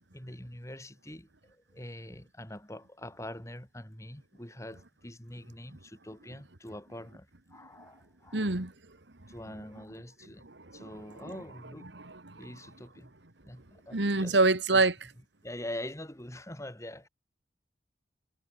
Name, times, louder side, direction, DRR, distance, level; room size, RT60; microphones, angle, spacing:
voice 1, 0.1-8.5 9.3-10.5 10.7-11.9 12.4-13.1 13.4-14.4 14.7-14.8 15.4-17.1, left 1 dB, 15° left, 4.9 m, -44 dB
voice 2, 8.3-8.7 10.5-10.9 11.2-11.3 11.9-12.5 13.9-14.9, right 3 dB, 80° right, 2.3 m, -27 dB
head